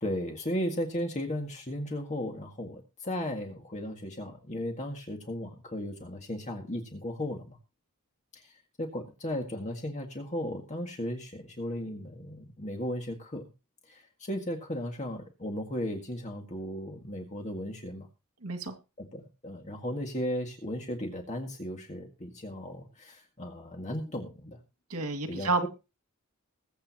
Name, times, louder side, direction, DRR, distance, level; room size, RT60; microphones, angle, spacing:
voice 1, 0.0-7.6 8.3-8.5 8.8-13.5 13.9-18.1 19.0-24.6 25.3-25.7, equal, 30° left, 2 dB, 1.9 m, -36 dB
voice 2, 18.4-18.7 24.9-25.7, right 3 dB, 90° right, 6 dB, 2.2 m, -30 dB
21.5 x 8.5 x 2.9 m, 0.29 s
head